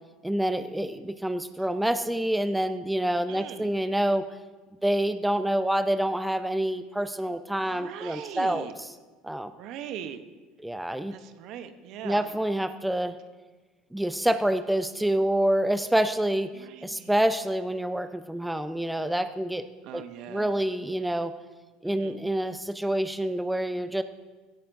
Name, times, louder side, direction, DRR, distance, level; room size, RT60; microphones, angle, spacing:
voice 1, 0.2-4.3 4.8-8.7 9.2-9.5 10.6-11.1 12.0-13.1 13.9-19.6 19.9-20.0 20.3-21.3 21.8-24.0, right 1 dB, 5° right, 10 dB, 0.6 m, -27 dB
voice 2, 3.3-3.7 7.6-8.7 9.5-10.2 11.1-12.3 16.5-17.1 19.8-20.5 21.8-22.2, right 9 dB, 60° right, 10 dB, 0.9 m, -41 dB
16.5 x 14.5 x 2.6 m, 1.3 s
hypercardioid pair, 75°, 0 cm